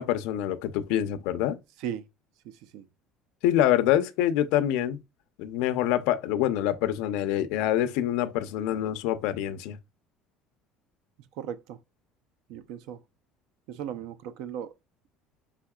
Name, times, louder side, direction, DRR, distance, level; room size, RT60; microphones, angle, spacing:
voice 1, 0.0-1.6 3.4-5.0 5.4-9.8, left 12 dB, 80° left, 0.6 m, -26 dB
voice 2, 11.4-11.8 12.5-13.0 13.7-14.7, right 9 dB, 70° right, 0.5 m, -36 dB
5.7 x 3.6 x 2.3 m
cardioid pair, 170°, 0 cm